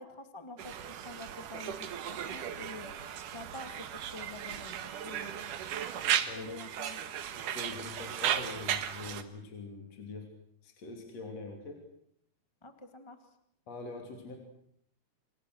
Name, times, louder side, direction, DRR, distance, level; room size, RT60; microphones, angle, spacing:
voice 1, 0.0-5.5 6.4-7.0 12.6-13.2, left 2 dB, 15° left, 7 dB, 0.9 m, -47 dB
Conversation, 0.6-9.2, right 10 dB, 60° right, 2.6 m, -36 dB
voice 2, 6.2-6.5 7.3-10.3 10.6-11.8 13.7-14.4, left 3 dB, 40° left, 3 dB, 4.0 m, -43 dB
28.5 x 28.0 x 6.5 m, 0.72 s
omnidirectional pair, 4.7 m